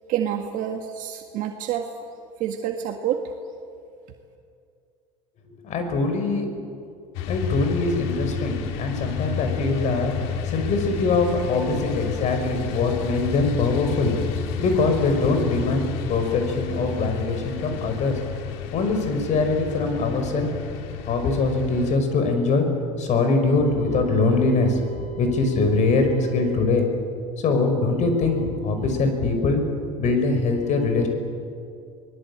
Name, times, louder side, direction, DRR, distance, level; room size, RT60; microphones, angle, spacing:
voice 1, 0.1-1.9 2.4-3.2, right 10 dB, 60° right, 4 dB, 1.7 m, -27 dB
voice 2, 5.6-6.5 7.3-10.1 10.5-14.2 14.6-18.2 18.7-20.5 21.1-22.7 23.0-26.9 27.4-29.6 30.0-31.1, left 3 dB, 50° left, 6 dB, 5.6 m, -22 dB
sound 1, 7.1-22.0, left 8 dB, 75° left, 2.5 m, -31 dB
24.5 x 20.5 x 8.8 m, 2.4 s
supercardioid pair, 85°, 15 cm